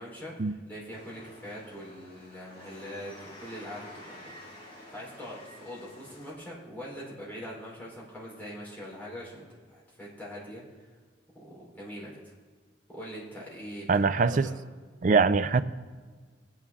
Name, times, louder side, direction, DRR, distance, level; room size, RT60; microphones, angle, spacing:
voice 1, 0.0-4.3 4.7-10.6 11.3-12.3 12.9-14.6, equal, 10° left, -6 dB, 3.9 m, -43 dB
sound 1, 0.9-6.3, left 1 dB, 30° left, 4.5 m, -50 dB
voice 2, 13.9-14.5 15.0-15.6, right 4 dB, 45° right, 13 dB, 0.4 m, -23 dB
19.5 x 9.0 x 3.6 m, 1.5 s
head